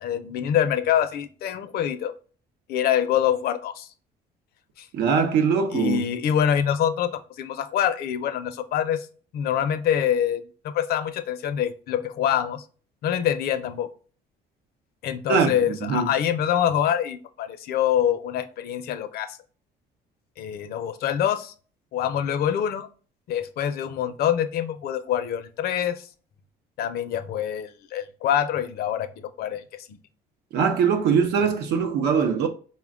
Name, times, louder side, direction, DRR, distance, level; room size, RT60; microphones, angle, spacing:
voice 1, 0.0-2.1 2.7-3.9 4.8-4.9 5.7-9.1 9.3-12.6 13.0-13.9 15.0-19.4 20.4-21.5 21.9-22.9 23.3-26.1 26.8-29.1 29.4-29.6 29.9-30.0, left 9 dB, 65° left, 0.5 m, -25 dB
voice 2, 4.9-6.0 15.3-16.1 30.5-32.5, right 6 dB, 80° right, 0.7 m, -22 dB
4.2 x 2.2 x 3.5 m
cardioid pair, 110°, 17 cm